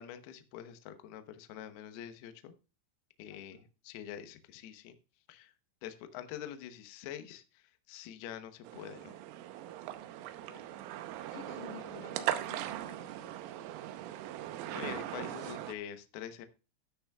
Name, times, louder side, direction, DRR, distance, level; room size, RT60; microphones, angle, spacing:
voice 1, 0.0-2.5 3.2-5.0 5.3-5.5 5.8-9.2 14.7-16.5, left 10 dB, 85° left, 9 dB, 2.2 m, -45 dB
sound 1, 8.6-15.7, right 13 dB, 80° right, 3.4 m, -40 dB
voice 2, 10.3-10.8 11.3-13.5, left 6 dB, 55° left, 6 dB, 2.7 m, -52 dB
12.5 x 9.9 x 2.3 m, 0.31 s
omnidirectional pair, 5.9 m